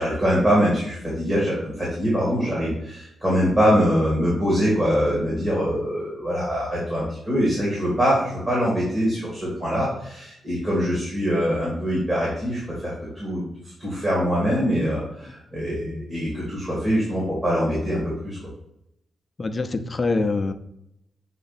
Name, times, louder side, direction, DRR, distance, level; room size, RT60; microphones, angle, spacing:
voice 1, 0.0-13.5 13.8-18.4, equal, 20° right, -7 dB, 2.0 m, -23 dB
voice 2, 19.4-20.5, left 3 dB, 25° left, 7 dB, 0.5 m, -24 dB
6.9 x 3.7 x 4.1 m, 0.79 s
wide cardioid pair, 175°, 0 cm